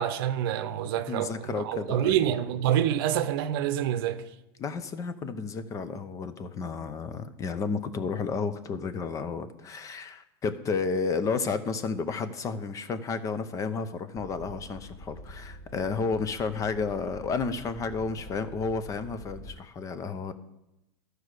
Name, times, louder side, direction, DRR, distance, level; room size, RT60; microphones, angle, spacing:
voice 1, 0.0-4.3, right 10 dB, 65° right, 0.7 m, -27 dB
voice 2, 1.1-2.3 4.6-20.3, left 4 dB, 25° left, 0.7 m, -32 dB
sound 1, 14.1-19.5, equal, 50° left, 3.4 m, -46 dB
12.5 x 4.8 x 6.5 m
supercardioid pair, 130°, 13 cm